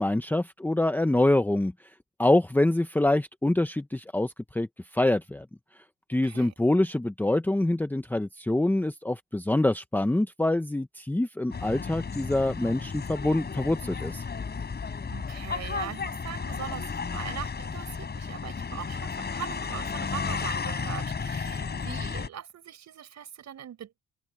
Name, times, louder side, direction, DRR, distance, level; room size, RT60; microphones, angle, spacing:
voice 1, 0.0-1.7 2.2-4.7 4.9-5.5 6.1-14.2, left 1 dB, 5° left, 0.9 m, -25 dB
voice 2, 6.2-6.5 15.1-24.0, right 10 dB, 65° right, 7.5 m, -41 dB
sound 1, 11.5-22.3, left 5 dB, 35° left, 7.4 m, -33 dB
cardioid pair, 120°, 30 cm